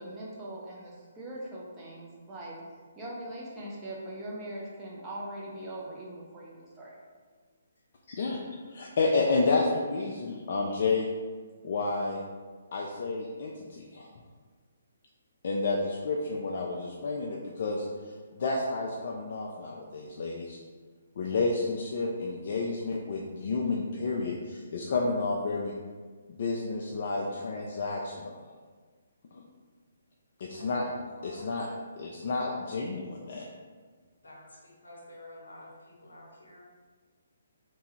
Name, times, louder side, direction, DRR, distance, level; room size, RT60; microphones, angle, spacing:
voice 1, 0.0-2.6 3.0-7.0, right 1 dB, 15° right, -6 dB, 0.7 m, -41 dB
voice 2, 8.1-8.4 8.7-11.1 11.6-12.2 12.7-14.1 15.4-20.6 21.2-25.7 26.3-28.4 29.3-29.4 30.4-30.9 31.2-31.7 32.0-33.5, left 3 dB, 50° left, -2 dB, 0.3 m, -30 dB
voice 3, 34.2-36.6, left 1 dB, 75° left, -3 dB, 0.8 m, -49 dB
3.3 x 2.2 x 3.1 m, 1.5 s
figure-of-eight pair, 135°, 0 cm